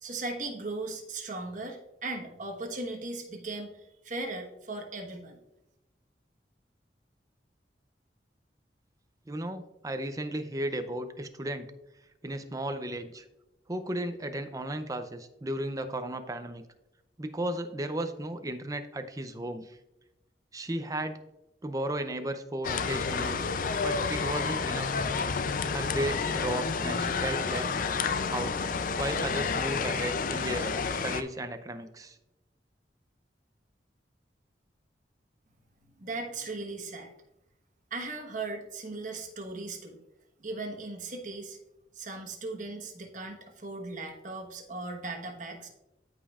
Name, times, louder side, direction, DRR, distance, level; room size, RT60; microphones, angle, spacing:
voice 1, 0.0-3.7 4.0-5.4 36.0-37.1 37.9-40.0 40.4-41.6 41.9-45.7, right 2 dB, 45° right, 2 dB, 1.3 m, -38 dB
voice 2, 9.3-11.7 12.2-13.2 13.7-16.6 17.2-19.8 20.5-21.2 21.6-23.4 23.8-24.9 25.7-27.7 28.3-28.7 29.0-32.2, right 1 dB, 20° right, 9 dB, 0.5 m, -34 dB
sound 1, 22.6-31.2, left 5 dB, 50° left, 0.4 m, -30 dB
13.5 x 5.3 x 2.4 m, 0.92 s
head